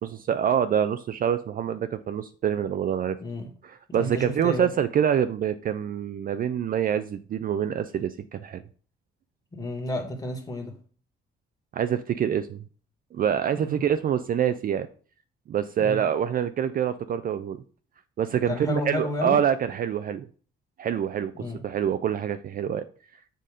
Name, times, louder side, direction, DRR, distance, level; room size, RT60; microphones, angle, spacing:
voice 1, 0.0-3.2 3.6-8.6 11.7-12.6 13.1-14.9 15.5-17.6 18.2-20.3 20.8-21.3 21.6-22.8, right 9 dB, 45° right, 11 dB, 0.4 m, -26 dB
voice 2, 3.9-4.7 9.5-10.7 13.5-13.8 15.8-16.0 18.5-19.4 21.4-21.6, left 1 dB, 20° left, 2 dB, 1.6 m, -31 dB
7.6 x 2.6 x 4.9 m, 0.42 s
cardioid pair, 90°, 20 cm